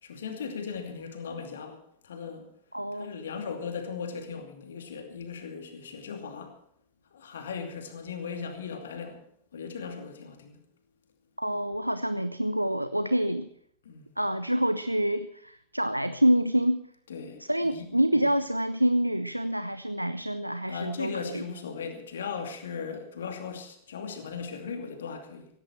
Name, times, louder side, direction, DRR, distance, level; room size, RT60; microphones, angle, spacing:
voice 1, 0.0-2.5 2.9-6.6 7.1-9.2 9.5-10.6 13.8-14.1 17.1-17.9 18.1-18.3 20.7-25.5, left 6 dB, 65° left, 2.5 m, -38 dB
voice 2, 2.7-3.1 11.4-13.5 14.2-16.9 17.5-21.4, equal, 90° right, 0.5 m, -27 dB
16.5 x 16.5 x 4.5 m
figure-of-eight pair, 90°, 0 cm